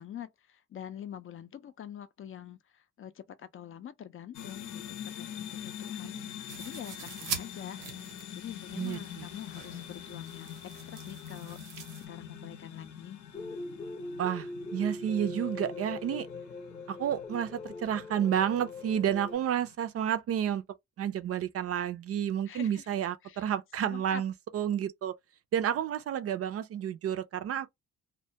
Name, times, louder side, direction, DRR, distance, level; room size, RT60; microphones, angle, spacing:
voice 1, 0.0-6.2 6.6-7.8 8.3-10.5 10.9-11.6 12.0-13.2 22.5-22.9 23.2-23.5 23.8-24.2, left 10 dB, 45° left, 0.4 m, -45 dB
sound 1, 4.3-19.7, left 10 dB, 80° left, 0.7 m, -45 dB
sound 2, 6.5-12.1, right 7 dB, 85° right, 0.8 m, -43 dB
voice 2, 8.8-9.2 14.2-16.3 16.9-20.6 21.0-25.2 25.5-27.7, right 9 dB, 50° right, 0.4 m, -31 dB
sound 3, 13.3-19.3, left 2 dB, 15° left, 0.7 m, -41 dB
2.2 x 2.2 x 2.7 m
cardioid pair, 90°, 30 cm